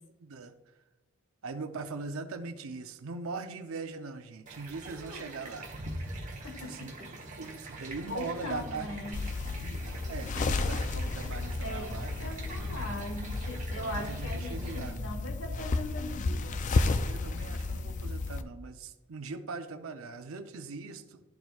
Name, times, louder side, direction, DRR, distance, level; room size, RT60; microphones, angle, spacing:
voice 1, 0.1-0.5 1.4-5.7 6.6-9.2 9.5-12.5 13.7-15.0 17.0-21.2, right 4 dB, 80° right, 8 dB, 0.6 m, -41 dB
sound 1, 4.5-14.9, right 1 dB, 35° right, 1.2 m, -43 dB
voice 2, 6.4-7.1 8.1-9.2 11.6-16.6, left 1 dB, 65° left, 5 dB, 1.1 m, -40 dB
sound 2, 9.1-18.4, left 3 dB, 35° left, 0.3 m, -33 dB
sound 3, 10.7-17.5, equal, 90° left, 1.5 m, -49 dB
12.0 x 4.4 x 2.3 m, 1.1 s
head